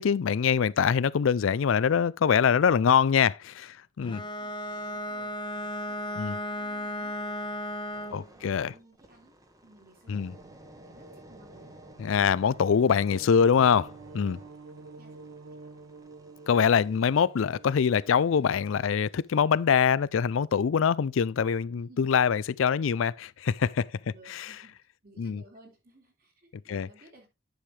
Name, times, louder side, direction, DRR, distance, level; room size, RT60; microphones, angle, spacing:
voice 1, 0.0-4.2 6.2-6.4 8.1-8.7 10.1-10.3 12.0-14.4 16.5-23.9 24.3-24.5 25.2-25.4 26.7-26.9, left 7 dB, 80° left, 0.4 m, -24 dB
Bowed string instrument, 4.0-8.3, left 1 dB, 25° left, 0.9 m, -35 dB
voice 2, 4.1-5.3 5.9-7.3 7.9-9.3 9.6-11.7 15.0-15.2 15.6-15.7 21.7-22.0 24.1-24.7 25.0-27.3, right 1 dB, 50° right, 3.8 m, -57 dB
sound 1, 7.9-18.9 19.4-19.6, right 1 dB, 15° right, 1.1 m, -53 dB
sound 2, 10.3-18.3, right 3 dB, 90° right, 1.0 m, -49 dB
10.5 x 6.5 x 3.3 m
head